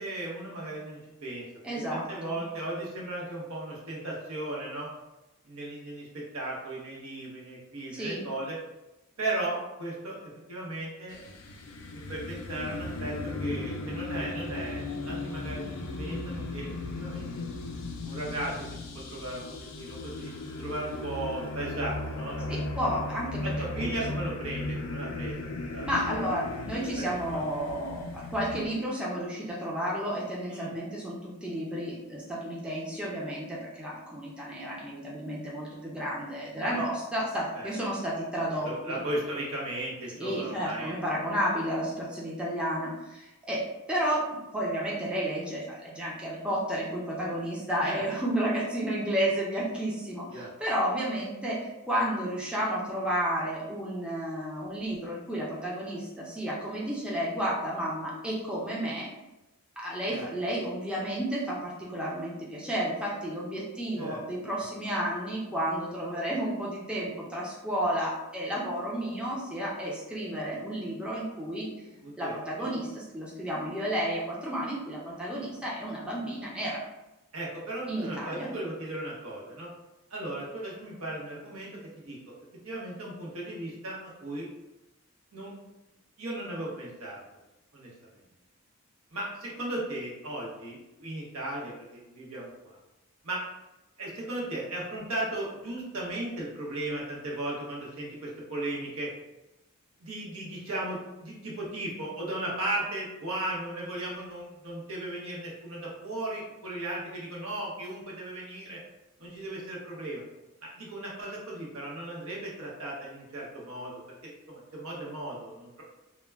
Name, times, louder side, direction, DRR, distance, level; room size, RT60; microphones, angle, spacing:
voice 1, 0.0-1.5 1.9-4.9 5.4-8.6 9.2-11.2 11.9-17.3 18.0-18.5 19.1-19.4 19.8-20.3 20.6-22.6 23.4-25.4 25.7-25.9 27.3-27.4 30.5-30.7 36.6-36.8 37.5-37.7 38.5-41.0 47.8-48.0 50.3-50.5 60.1-60.3 64.0-64.2 72.0-72.7 77.3-79.7 80.1-81.7 81.9-82.3 82.6-84.5 85.3-85.5 86.2-87.2 87.7-87.9 89.1-92.8 93.2-93.4 94.0-99.1 100.0-108.8 109.2-110.2 110.6-113.9 114.2-115.8, right 1 dB, 75° right, -4 dB, 0.8 m, -36 dB
voice 2, 1.6-2.4 7.9-8.3 22.5-23.4 23.8-23.9 25.8-39.0 40.1-44.3 44.5-59.1 59.8-71.7 72.2-72.9 73.1-76.8 77.9-78.5, equal, 5° right, -6 dB, 0.4 m, -32 dB
sound 1, 11.1-28.7, left 2 dB, 65° left, 0.4 m, -36 dB
2.2 x 2.1 x 3.3 m, 0.99 s
head